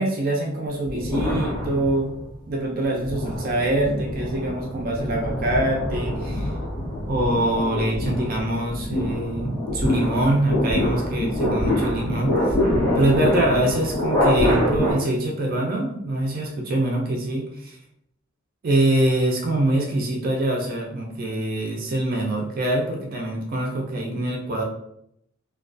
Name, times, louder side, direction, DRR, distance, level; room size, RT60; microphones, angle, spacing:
voice 1, 0.0-2.1 2.5-6.5 7.1-12.5 12.9-17.8 18.6-24.6, right 1 dB, 45° right, 0 dB, 0.4 m, -24 dB
sound 1, 0.9-2.3 2.8-14.9, left 1 dB, 10° left, 1.0 m, -25 dB
2.3 x 2.2 x 2.5 m, 0.75 s
head